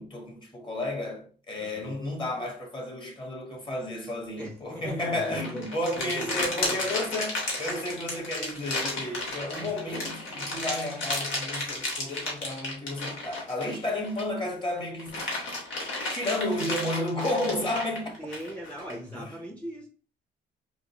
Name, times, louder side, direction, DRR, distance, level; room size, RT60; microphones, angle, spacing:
voice 1, 0.0-15.3 15.7-18.2 19.1-19.3, left 1 dB, 25° left, 1.2 m, -32 dB
voice 2, 1.6-1.9 4.4-6.8 9.6-9.7 18.2-19.9, equal, 5° left, 0.7 m, -40 dB
sound 1, 5.1-14.4 14.8-18.9, left 2 dB, 70° left, 1.5 m, -33 dB
4.6 x 2.0 x 2.9 m
cardioid pair, 90°, 20 cm